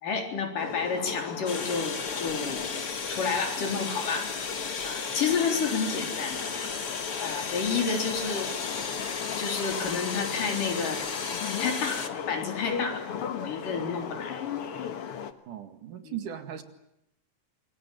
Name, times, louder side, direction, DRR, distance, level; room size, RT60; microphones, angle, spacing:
voice 1, 0.0-2.6 3.1-4.3 4.8-6.4 7.2-8.5 9.4-11.0 11.6-13.0 13.4-14.4 16.0-16.2, left 5 dB, 70° left, 4 dB, 5.5 m, -30 dB
sound 1, 0.6-15.3, left 7 dB, 55° left, 1.9 m, -36 dB
sound 2, 1.5-12.1, left 4 dB, 35° left, 1.3 m, -35 dB
voice 2, 15.5-16.6, right 10 dB, 70° right, 8 dB, 3.5 m, -38 dB
26.5 x 23.5 x 9.2 m, 0.83 s
omnidirectional pair, 3.9 m